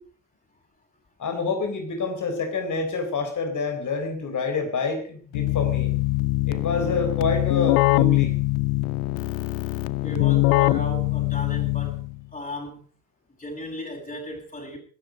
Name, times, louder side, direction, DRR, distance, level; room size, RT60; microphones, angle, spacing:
voice 1, 1.2-5.9 6.5-8.3, left 4 dB, 40° left, 6 dB, 4.2 m, -27 dB
Keyboard (musical), 5.3-12.2, left 20 dB, 60° left, 0.8 m, -23 dB
voice 2, 10.0-12.0 12.3-12.9 13.4-14.8, left 1 dB, 15° left, -1 dB, 6.9 m, -35 dB
20.5 x 12.5 x 5.0 m, 0.44 s
figure-of-eight pair, 55°, 48 cm